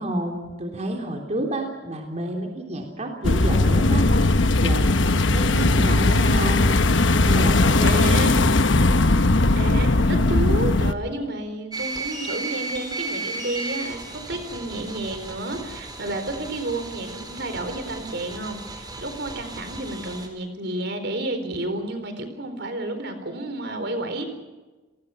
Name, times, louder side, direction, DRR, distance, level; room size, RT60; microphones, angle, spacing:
voice 1, 0.0-4.0 4.3-6.7 7.2-8.4, right 1 dB, 35° right, 2 dB, 3.5 m, -30 dB
sound 1, 3.2-10.9, left 2 dB, 70° left, 1.1 m, -18 dB
voice 2, 7.8-8.4 9.5-24.2, right 1 dB, 60° right, 8 dB, 4.0 m, -30 dB
sound 2, 11.7-20.3, right 3 dB, 20° right, 4.3 m, -35 dB
29.5 x 20.0 x 5.8 m, 1.2 s
head